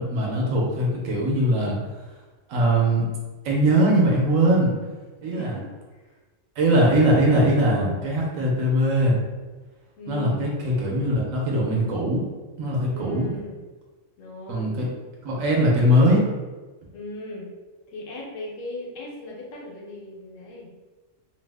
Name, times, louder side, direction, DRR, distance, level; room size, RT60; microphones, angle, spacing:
voice 1, 0.0-1.8 2.5-3.1 3.4-4.7 5.2-5.6 6.6-9.2 10.1-12.2 12.6-13.3 14.5-14.9 15.2-16.3, right 1 dB, 90° right, -3 dB, 1.1 m, -21 dB
voice 2, 5.2-5.7 10.0-10.4 12.9-13.6 14.2-14.7 16.9-17.5 17.9-20.7, left 2 dB, 75° left, -2 dB, 1.1 m, -37 dB
2.8 x 2.0 x 3.3 m, 1.3 s
omnidirectional pair, 1.3 m